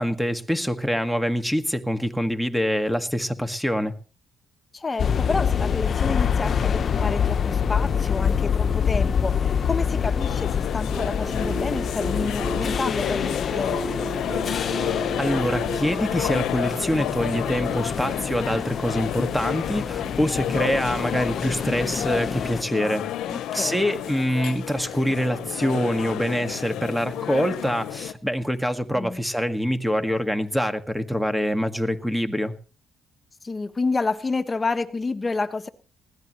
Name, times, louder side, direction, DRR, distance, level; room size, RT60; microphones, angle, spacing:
voice 1, 0.0-3.9 15.2-23.0 23.5-32.5, equal, ahead, 8 dB, 1.7 m, -25 dB
voice 2, 4.7-13.8 23.3-23.8 28.9-29.2 33.4-35.7, left 3 dB, 25° left, 9 dB, 1.3 m, -29 dB
sound 1, 5.0-22.6, left 7 dB, 50° left, 1.0 m, -26 dB
sound 2, 10.2-28.1, left 11 dB, 85° left, 0.9 m, -31 dB
sound 3, 10.9-20.7, right 2 dB, 25° right, 7.1 m, -36 dB
20.0 x 15.5 x 3.1 m, 0.37 s
cardioid pair, 90°, 0 cm